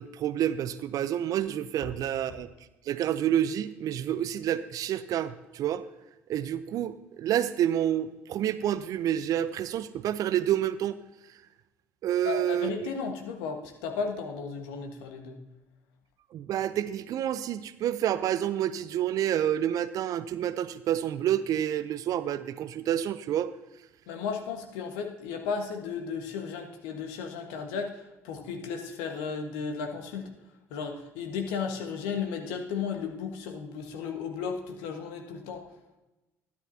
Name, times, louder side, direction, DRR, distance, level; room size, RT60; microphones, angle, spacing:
voice 1, 0.0-2.5 2.9-5.8 6.3-11.0 12.0-12.7 16.3-23.5, right 11 dB, 55° right, 14 dB, 0.6 m, -28 dB
voice 2, 12.2-15.4 24.1-30.3 30.7-35.7, left 6 dB, 70° left, 4 dB, 1.4 m, -34 dB
12.5 x 11.0 x 2.8 m, 1.0 s
hypercardioid pair, 60°, 7 cm